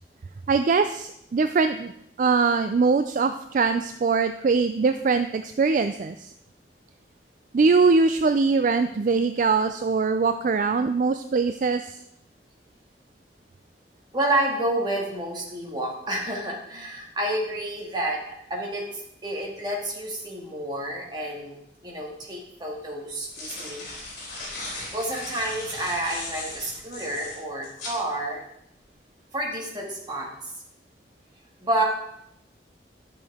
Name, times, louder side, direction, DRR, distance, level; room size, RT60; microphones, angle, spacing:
voice 1, 0.5-1.9 2.2-6.3 7.5-12.0, right 4 dB, 45° right, 9 dB, 0.3 m, -22 dB
voice 2, 14.1-23.9 24.9-28.4 29.3-30.5 31.6-31.8, right 1 dB, 25° right, -2 dB, 2.0 m, -29 dB
sound 1, 21.9-22.0 23.0-28.0, left 2 dB, 50° left, 3.6 m, -37 dB
12.5 x 6.4 x 3.6 m, 0.78 s
head